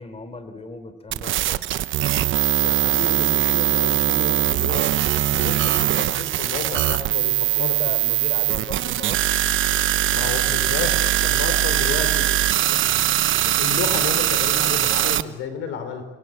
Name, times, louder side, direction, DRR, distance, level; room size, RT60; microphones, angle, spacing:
voice 1, 0.0-1.6 7.4-9.4, left 3 dB, 30° left, 10 dB, 3.7 m, -36 dB
sound 1, 1.1-15.2, right 13 dB, 80° right, 1.0 m, -21 dB
voice 2, 2.6-5.0 5.3-7.8 10.1-12.8 13.4-16.1, left 6 dB, 90° left, 8 dB, 5.3 m, -32 dB
29.0 x 22.0 x 8.6 m, 1.0 s
cardioid pair, 90°, 20 cm